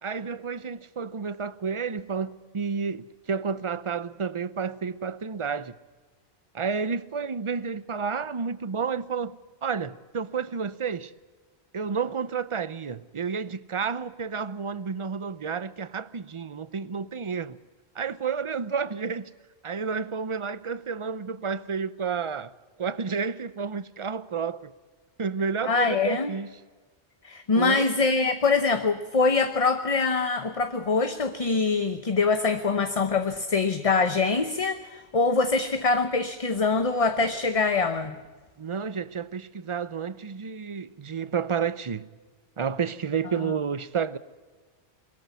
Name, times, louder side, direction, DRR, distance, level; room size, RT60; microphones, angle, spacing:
voice 1, 0.0-5.7 6.5-9.4 9.6-11.1 11.7-17.6 18.0-19.3 19.6-22.5 22.8-24.7 25.2-26.5 27.5-27.9 38.6-42.1 42.6-44.2, right 6 dB, 35° right, 0.6 m, -30 dB
voice 2, 25.6-26.3 27.2-38.1 43.4-43.5, left 4 dB, 35° left, 0.9 m, -24 dB
22.0 x 14.0 x 9.4 m
omnidirectional pair, 1.1 m